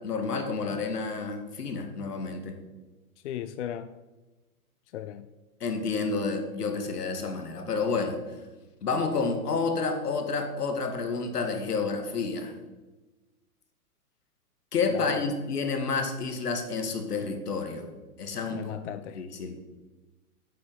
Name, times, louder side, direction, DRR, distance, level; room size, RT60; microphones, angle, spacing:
voice 1, 0.0-2.5 5.6-8.2 8.8-12.5 14.7-17.9 18.2-18.7 19.1-19.6, left 4 dB, 80° left, 5 dB, 2.1 m, -30 dB
voice 2, 3.2-4.0 4.9-5.3 14.9-15.3 18.5-19.2, left 11 dB, 50° left, 12 dB, 0.6 m, -36 dB
8.6 x 8.3 x 5.4 m, 1.2 s
hypercardioid pair, 125°, 46 cm